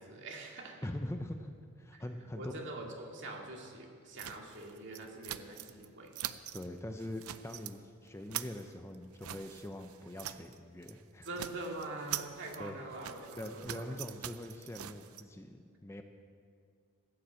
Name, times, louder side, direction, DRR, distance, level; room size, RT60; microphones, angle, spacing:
voice 1, 0.0-0.8 2.4-6.1 11.2-14.0, right 2 dB, 55° right, 0 dB, 2.3 m, -44 dB
voice 2, 0.8-2.5 6.5-11.3 12.6-12.7 13.4-16.0, left 1 dB, 10° left, 6 dB, 0.6 m, -43 dB
sound 1, 4.2-5.9 6.1-6.7 7.0-7.8 8.1-10.6 10.8-11.0 11.2-15.2, right 11 dB, 70° right, 0.5 m, -44 dB
15.5 x 9.8 x 7.6 m, 2.2 s
head